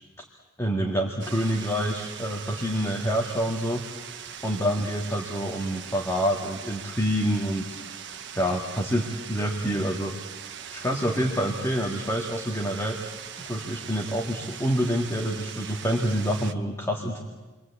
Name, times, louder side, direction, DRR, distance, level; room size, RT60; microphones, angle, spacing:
voice 1, 0.6-3.8 4.4-7.8 8.3-10.1 10.7-13.0 13.4-17.2, equal, 15° left, 0 dB, 2.0 m, -27 dB
sound 1, 1.2-16.5, right 8 dB, 60° right, 1.3 m, -41 dB
30.0 x 23.5 x 8.4 m, 1.2 s
head